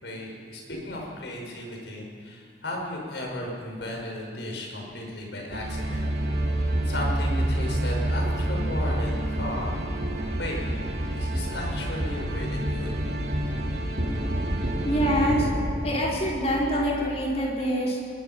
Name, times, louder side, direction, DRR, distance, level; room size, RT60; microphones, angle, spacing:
voice 1, 0.0-6.1 6.8-9.7 10.4-10.6 11.2-13.0, left 1 dB, 75° left, 0 dB, 5.8 m, -35 dB
sound 1, 5.5-17.5, right 1 dB, 65° right, 2.9 m, -28 dB
voice 2, 14.8-15.5 15.8-18.1, equal, 35° left, -4 dB, 5.0 m, -26 dB
22.5 x 20.5 x 5.7 m, 2.5 s
head